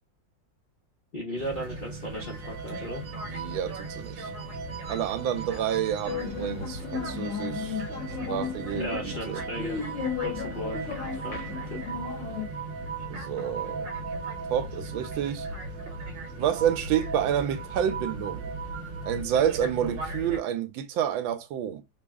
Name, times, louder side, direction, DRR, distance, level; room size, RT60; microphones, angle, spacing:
voice 1, 1.1-3.0 8.7-9.8 10.2-10.9 11.2-11.4 11.7-11.8, equal, 85° left, 0.4 m, -36 dB
sound 1, 1.4-20.4, right 2 dB, 70° right, 1.5 m, -39 dB
sound 2, 2.2-6.6 6.8-19.2, right 6 dB, 40° right, 0.9 m, -41 dB
voice 2, 3.3-4.3 4.9-7.8 8.3-9.4 13.1-13.9 14.5-15.5 16.4-18.5 19.0-21.8, right 9 dB, 85° right, 1.3 m, -29 dB
sound 3, 6.0-12.5, left 6 dB, 40° left, 1.2 m, -34 dB
3.5 x 2.0 x 3.4 m
omnidirectional pair, 2.1 m